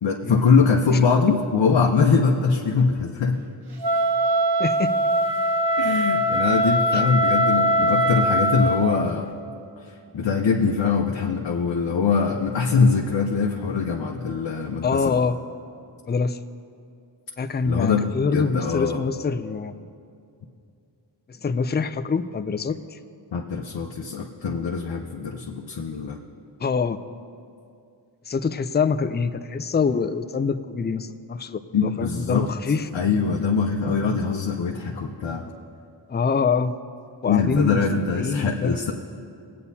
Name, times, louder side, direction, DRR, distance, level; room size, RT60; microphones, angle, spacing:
voice 1, 0.0-3.4 5.8-9.3 10.1-15.2 17.6-18.0 18.3-19.0 23.3-26.2 31.7-32.5 32.7-35.4 37.3-38.9, left 5 dB, 70° left, 0 dB, 0.8 m, -22 dB
Wind instrument woodwind instrument, 3.8-8.8, right 1 dB, 60° right, 0.9 m, -21 dB
voice 2, 4.6-5.0 6.9-7.0 14.8-15.4 16.1-16.4 17.4-19.7 21.3-23.0 26.6-27.0 28.3-32.9 36.1-36.8 37.2-37.8 38.1-38.8, left 5 dB, 25° left, 9 dB, 0.4 m, -25 dB
20.5 x 8.6 x 2.7 m, 2.4 s
cardioid pair, 55°, 44 cm